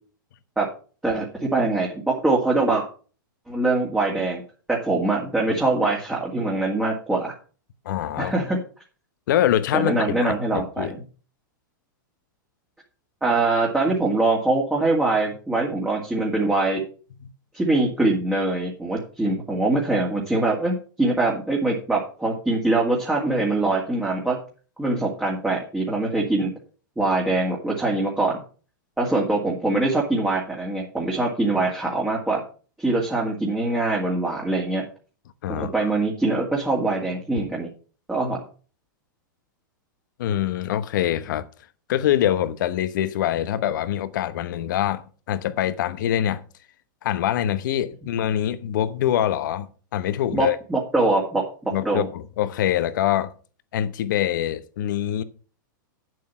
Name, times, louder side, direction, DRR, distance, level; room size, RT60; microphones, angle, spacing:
voice 1, 1.0-2.8 3.5-4.4 4.7-7.3 8.2-8.6 9.7-11.0 13.2-16.8 17.5-24.4 24.8-26.5 27.0-28.4 29.0-32.4 32.8-34.8 35.5-37.7 38.1-38.4 50.3-52.1, right 2 dB, 5° right, 2.1 m, -23 dB
voice 2, 7.8-8.3 9.3-10.9 17.2-17.3 35.4-35.9 40.2-41.5 41.9-46.4 47.0-50.6 51.7-53.3 53.7-55.2, left 11 dB, 65° left, 1.0 m, -24 dB
8.5 x 7.7 x 5.7 m
hypercardioid pair, 120°, 11 cm